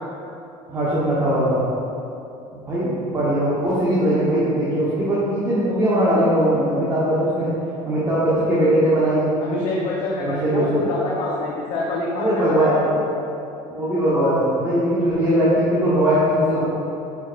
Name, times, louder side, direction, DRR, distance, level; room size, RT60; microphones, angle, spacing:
voice 1, 0.7-1.7 2.5-7.5 7.8-9.3 10.2-10.6 12.1-13.0 13.7-16.7, right 1 dB, 20° right, -10 dB, 1.1 m, -20 dB
voice 2, 9.4-12.8, left 2 dB, 45° left, -4 dB, 0.8 m, -26 dB
8.9 x 5.5 x 2.6 m, 2.8 s
cardioid pair, 165°, 13 cm